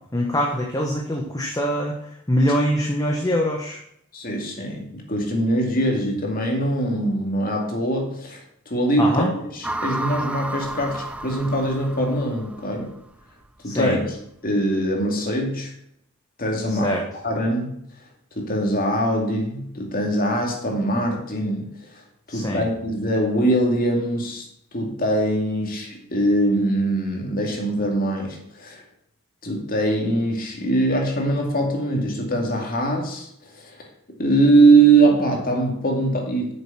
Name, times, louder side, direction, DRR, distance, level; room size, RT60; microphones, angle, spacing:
voice 1, 0.1-2.0 2.3-3.8 9.0-9.3 13.6-13.9 16.7-17.0 22.3-22.6, equal, 15° left, 0 dB, 1.1 m, -23 dB
voice 2, 4.1-12.9 13.6-14.2 14.4-15.7 16.4-16.9 17.2-17.8 18.4-21.7 22.3-24.4 24.7-28.8 29.4-33.8 34.2-36.5, right 2 dB, 45° left, 1 dB, 2.4 m, -22 dB
sound 1, 9.6-12.9, right 1 dB, 5° right, 0.3 m, -32 dB
8.8 x 6.7 x 6.0 m, 0.73 s
head